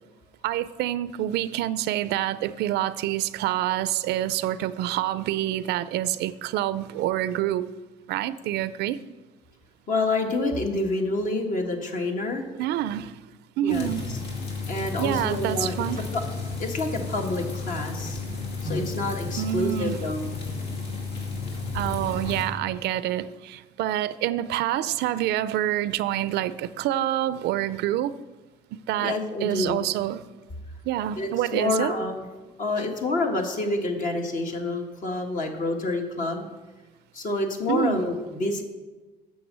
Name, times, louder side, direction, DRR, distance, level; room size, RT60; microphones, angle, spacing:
voice 1, 0.4-7.7 8.1-9.0 12.6-13.2 13.6-14.1 15.0-16.1 19.4-20.0 21.7-28.2 28.7-30.2 30.9-31.9 37.7-38.0, right 13 dB, 80° right, 0.5 m, -27 dB
voice 2, 9.9-12.5 13.6-13.9 14.7-15.7 16.1-16.2 16.6-18.2 18.6-20.3 29.0-29.8 31.2-32.2 32.6-36.5 37.1-38.6, left 2 dB, 50° left, 1.6 m, -28 dB
sound 1, 13.7-22.4, left 3 dB, 75° left, 2.7 m, -33 dB
9.3 x 6.5 x 7.4 m
cardioid pair, 110°, 17 cm